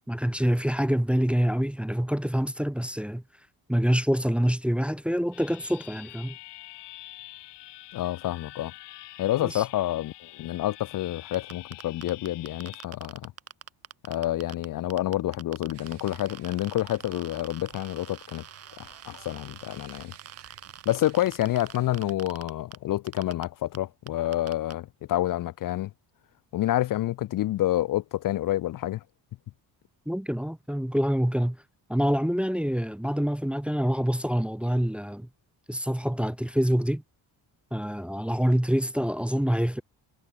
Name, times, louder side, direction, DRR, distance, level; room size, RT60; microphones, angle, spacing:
voice 1, 0.0-3.2 3.7-6.4 9.4-9.6 30.1-31.6 31.9-35.3 35.7-37.0 37.7-39.8, equal, 5° right, 0.6 m, -26 dB
sound 1, 5.3-12.9, left 18 dB, 85° left, 0.8 m, -46 dB
voice 2, 7.9-8.7 9.2-13.3 14.1-18.4 18.8-20.1 20.9-25.9 26.5-29.0, left 14 dB, 55° left, 0.5 m, -28 dB
sound 2, 11.3-14.7 14.9-22.8 23.1-23.4 23.7-23.8 24.1-24.7, right 8 dB, 35° right, 1.0 m, -44 dB
sound 3, 15.7-22.2, right 13 dB, 80° right, 4.3 m, -55 dB
cardioid pair, 100°, 40 cm